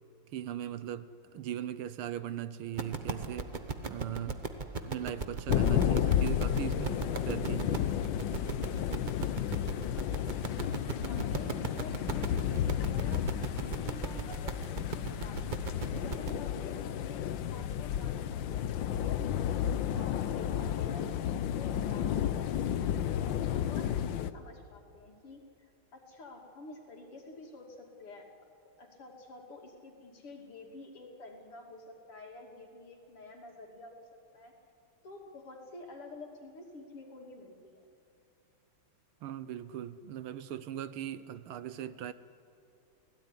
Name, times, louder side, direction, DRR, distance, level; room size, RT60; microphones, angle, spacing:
voice 1, 0.3-3.5 3.9-4.4 4.8-7.8 39.2-42.1, right 10 dB, 75° right, 1.7 m, -39 dB
sound 1, 2.8-16.4, right 4 dB, 35° right, 0.8 m, -37 dB
sound 2, 5.5-24.3, left 10 dB, 65° left, 1.4 m, -32 dB
voice 2, 9.2-10.4 10.9-19.2 19.6-22.6 23.2-28.3 28.8-34.1 34.3-34.5 35.0-37.8, left 2 dB, 85° left, 3.7 m, -50 dB
29.0 x 17.0 x 9.8 m
omnidirectional pair, 2.4 m